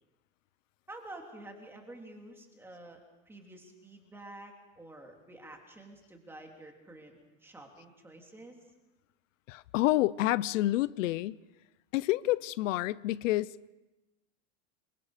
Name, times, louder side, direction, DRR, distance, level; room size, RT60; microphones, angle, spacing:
voice 1, 0.9-3.0 3.3-8.6, right 1 dB, 5° right, 3.0 m, -49 dB
voice 2, 9.5-11.4 11.9-13.7, left 16 dB, 85° left, 0.7 m, -29 dB
27.0 x 23.5 x 5.0 m
supercardioid pair, 160°, 37 cm